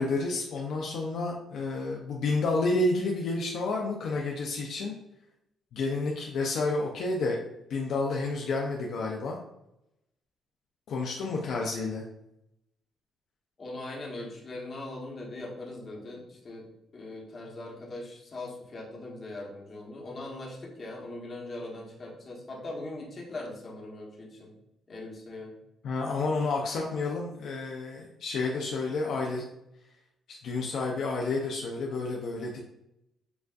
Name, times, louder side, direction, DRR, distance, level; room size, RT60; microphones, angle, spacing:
voice 1, 0.0-4.9 5.7-7.4 7.7-9.4 10.9-12.0 25.8-29.4 30.3-32.6, left 3 dB, 70° left, -1 dB, 0.6 m, -30 dB
voice 2, 13.6-16.7 16.9-24.5 24.9-25.6, left 2 dB, 35° left, -3 dB, 1.2 m, -40 dB
6.9 x 2.5 x 2.5 m, 0.83 s
cardioid pair, 125°, 0 cm